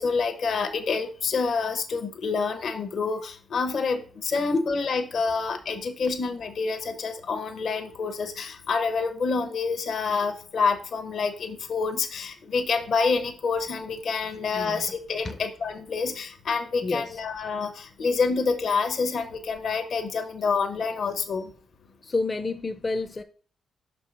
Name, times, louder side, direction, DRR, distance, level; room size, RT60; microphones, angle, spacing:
voice 1, 0.0-21.5, left 4 dB, 65° left, 0.9 m, -27 dB
voice 2, 14.5-14.8 15.2-15.4 16.8-17.2 22.0-23.2, left 3 dB, 30° left, 0.5 m, -30 dB
6.0 x 4.5 x 4.1 m
cardioid pair, 80°, 0 cm